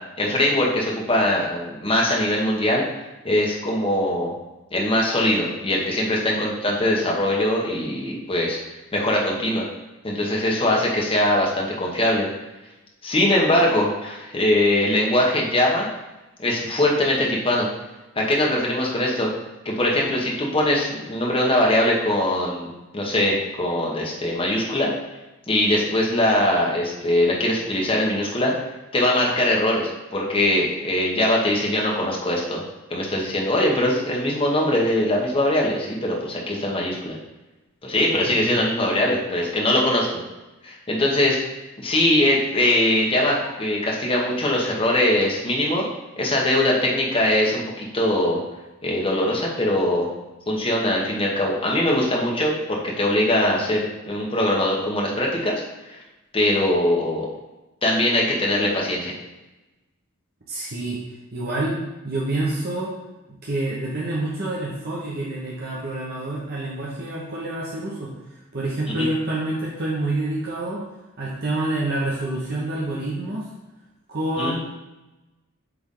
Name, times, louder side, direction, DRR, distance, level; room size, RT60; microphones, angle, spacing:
voice 1, 0.2-2.8 3.2-4.3 4.7-8.6 8.9-9.7 10.0-12.3 13.0-15.9 16.4-17.7 18.2-19.3 19.6-22.7 22.9-24.9 25.5-28.5 28.9-32.6 32.9-37.2 37.8-40.2 40.6-41.4 41.8-45.9 46.2-48.4 48.8-50.1 50.5-55.6 55.9-56.0 56.3-57.3 57.8-59.1 69.0-69.1 74.4-74.6, left 1 dB, 25° left, -3 dB, 1.1 m, -21 dB
voice 2, 60.5-61.0 61.3-61.8 62.0-62.9 63.3-68.1 68.5-70.8 71.2-73.5 74.1-74.6, right 2 dB, 45° right, -5 dB, 0.9 m, -27 dB
7.9 x 3.4 x 3.8 m, 1.0 s
head